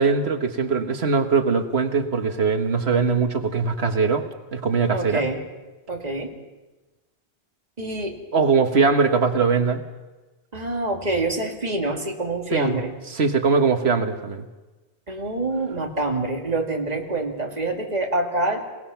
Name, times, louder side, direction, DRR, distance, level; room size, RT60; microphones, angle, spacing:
voice 1, 0.0-4.3 4.5-5.2 8.3-9.8 12.5-12.8 13.1-14.5, right 5 dB, 85° right, 7 dB, 1.7 m, -21 dB
voice 2, 4.9-5.4 5.9-6.3 7.8-8.2 10.5-12.9 15.1-18.6, right 2 dB, 40° right, 2 dB, 2.4 m, -26 dB
27.5 x 18.5 x 5.9 m, 1.2 s
omnidirectional pair, 1.1 m